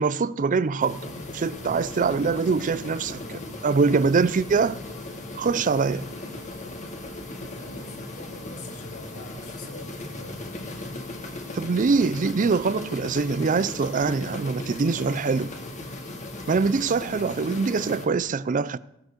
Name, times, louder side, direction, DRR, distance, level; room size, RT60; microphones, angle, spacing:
voice 1, 0.0-3.2 3.6-4.8 5.4-6.1 11.5-15.5 16.5-18.8, right 4 dB, 40° right, 0.4 m, -23 dB
sound 1, 0.8-18.1, left 2 dB, 35° left, 1.7 m, -37 dB
voice 2, 1.9-3.7 7.5-10.6 13.8-15.1, left 2 dB, 85° left, 2.4 m, -45 dB
16.0 x 7.9 x 6.6 m
head